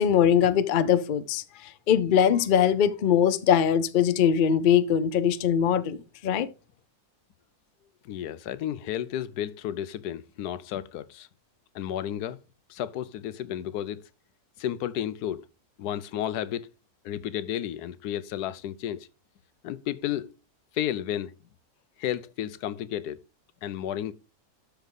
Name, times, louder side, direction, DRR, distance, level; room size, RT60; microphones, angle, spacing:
voice 1, 0.0-6.5, left 8 dB, 50° left, 0.6 m, -22 dB
voice 2, 8.0-11.3 11.7-12.4 12.7-14.0 14.6-15.4 15.8-16.7 17.0-19.1 19.6-20.3 20.7-21.3 22.0-23.2 23.6-24.1, left 11 dB, 85° left, 1.2 m, -32 dB
12.5 x 4.7 x 3.8 m
omnidirectional pair, 1.7 m